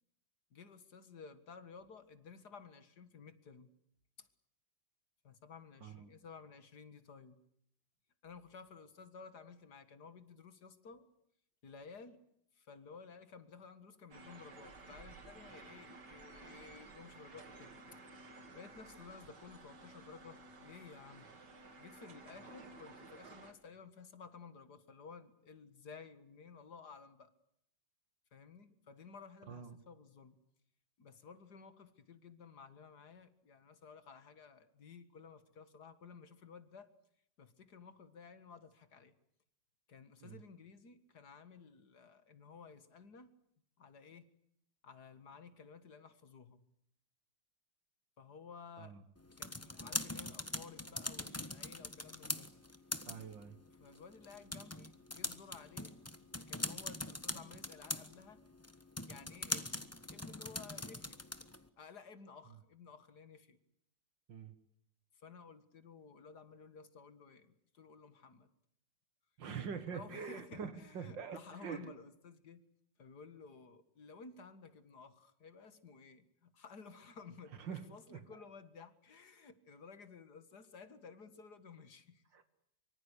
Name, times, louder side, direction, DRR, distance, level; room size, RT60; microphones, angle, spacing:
voice 1, 0.5-3.7 4.2-4.3 5.2-7.4 8.2-11.1 11.6-12.2 12.5-18.0 18.5-21.3 21.8-27.3 28.3-30.4 31.0-36.9 37.4-39.1 39.9-43.3 43.8-44.3 44.8-46.6 48.2-49.0 49.4-52.5 53.8-56.0 56.5-58.4 59.1-61.2 61.8-63.6 65.2-68.5 69.9-72.6 73.0-82.2, left 5 dB, 60° left, 12 dB, 2.3 m, -55 dB
voice 2, 5.8-6.1 29.5-29.8 40.2-40.4 48.8-49.0 53.1-53.6 64.3-64.5 69.4-71.9 77.6-77.8 78.1-78.2 82.3-82.4, right 7 dB, 80° right, 10 dB, 2.3 m, -44 dB
sound 1, 14.1-23.5, right 3 dB, 65° right, 2.9 m, -55 dB
sound 2, 49.2-61.7, left 1 dB, 10° left, 1.1 m, -43 dB
25.0 x 24.0 x 8.3 m, 0.71 s
omnidirectional pair, 2.0 m